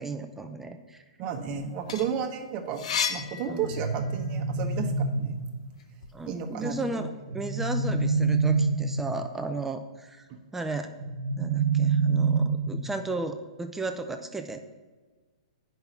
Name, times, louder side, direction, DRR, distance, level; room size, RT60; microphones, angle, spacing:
voice 1, 0.0-1.0 3.4-3.7 6.1-10.9 11.4-14.6, right 2 dB, 5° right, 6 dB, 0.6 m, -35 dB
voice 2, 1.2-2.8 3.1-5.4 6.3-7.1 10.3-10.4, right 7 dB, 35° right, 4 dB, 1.2 m, -33 dB
sound 1, 1.6-4.3 4.7-6.1, left 7 dB, 65° left, 0.8 m, -34 dB
sound 2, 3.6-5.6 7.3-9.3 11.0-13.0, right 4 dB, 85° right, 0.9 m, -26 dB
8.8 x 5.5 x 5.9 m, 1.3 s
hypercardioid pair, 130°, 4 cm